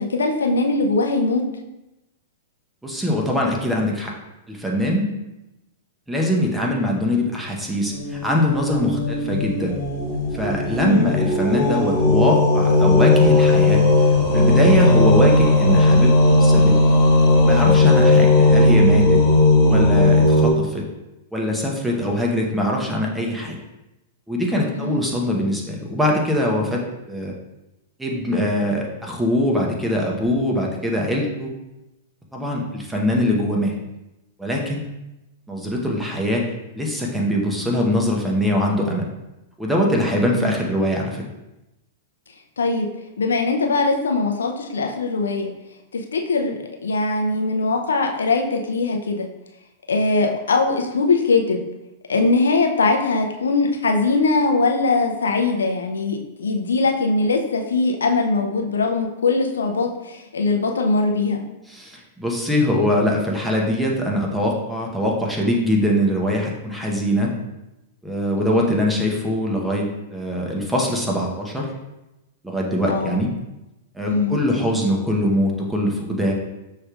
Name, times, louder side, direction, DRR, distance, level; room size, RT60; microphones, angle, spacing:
voice 1, 0.0-1.4 10.8-11.1 24.7-25.0 40.3-40.5 42.6-42.9 43.2-45.5 45.9-49.3 49.9-51.6 52.1-61.4 68.5-68.8 72.9-73.2 74.1-74.4, left 3 dB, 85° left, 3 dB, 0.6 m, -21 dB
voice 2, 2.8-4.1 4.5-5.1 6.1-9.7 10.3-13.8 14.3-16.8 17.4-19.2 19.7-20.8 21.3-23.6 24.3-26.8 27.1-27.3 28.0-31.5 32.3-33.7 34.4-34.9 35.5-36.4 36.7-39.1 39.6-41.2 61.7-67.3 68.0-71.7 72.4-73.3 73.9-76.3, left 1 dB, 5° right, -1 dB, 0.9 m, -22 dB
sound 1, 7.9-20.5, left 2 dB, 35° left, 1.4 m, -16 dB
6.3 x 3.3 x 2.4 m, 0.97 s
hypercardioid pair, 115°, 0 cm